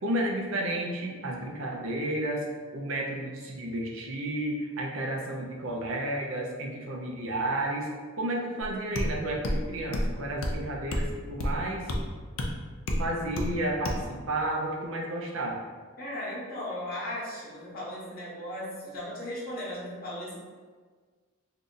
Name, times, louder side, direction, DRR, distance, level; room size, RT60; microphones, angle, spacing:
voice 1, 0.0-2.5 2.7-7.9 8.2-11.9 13.0-15.6, right 1 dB, 80° right, -1 dB, 0.6 m, -32 dB
sound 1, 8.6-8.7 8.9-9.1 9.4-9.6 9.9-10.1 10.4-10.6 10.9-11.1 11.4-11.6 11.9-12.0 12.4-12.5 12.9-13.0 13.4-13.5 13.8-14.0, left 1 dB, 90° left, 0.5 m, -28 dB
voice 2, 16.0-20.4, left 1 dB, 50° left, -5 dB, 1.1 m, -37 dB
2.7 x 2.5 x 3.9 m, 1.5 s
head